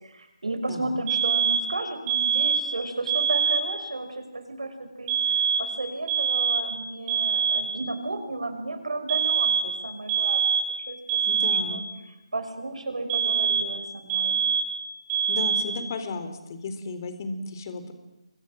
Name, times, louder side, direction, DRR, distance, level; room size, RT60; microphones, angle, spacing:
voice 1, 0.0-5.1 5.6-10.4 10.8-11.0 11.7-11.8 12.3-14.4, right 2 dB, 80° right, 7 dB, 5.3 m, -33 dB
voice 2, 0.7-1.0 11.2-11.8 15.3-17.9, left 3 dB, 35° left, 9 dB, 3.9 m, -34 dB
sound 1, 1.1-1.7 2.1-2.7 3.1-3.7 5.1-5.8 6.1-6.7 7.1-7.7 9.1-9.7 10.1-10.8 11.1-11.8 13.1-13.8 14.1-14.8 15.1-15.8, right 7 dB, 20° right, 5.1 m, -24 dB
28.5 x 24.5 x 7.6 m, 0.93 s
figure-of-eight pair, 160°, 3 cm